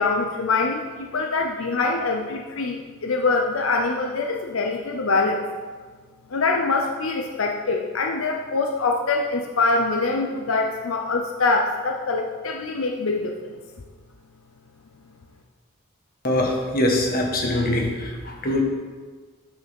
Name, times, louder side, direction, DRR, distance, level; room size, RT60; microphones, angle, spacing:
voice 1, 0.0-5.4 6.3-13.5, left 3 dB, 80° left, 2 dB, 0.7 m, -24 dB
voice 2, 16.2-18.6, left 1 dB, 45° left, 1 dB, 1.4 m, -23 dB
8.0 x 6.3 x 5.3 m, 1.5 s
head